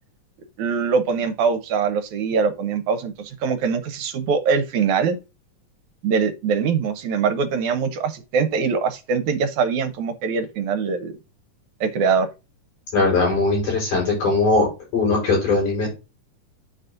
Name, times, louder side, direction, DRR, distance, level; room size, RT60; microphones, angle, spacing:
voice 1, 0.6-5.2 6.0-11.1 11.8-12.3, right 5 dB, 70° right, 2.3 m, -22 dB
voice 2, 12.9-14.7 14.9-15.9, left 3 dB, 75° left, 7.2 m, -20 dB
9.9 x 4.2 x 3.9 m
omnidirectional pair, 3.6 m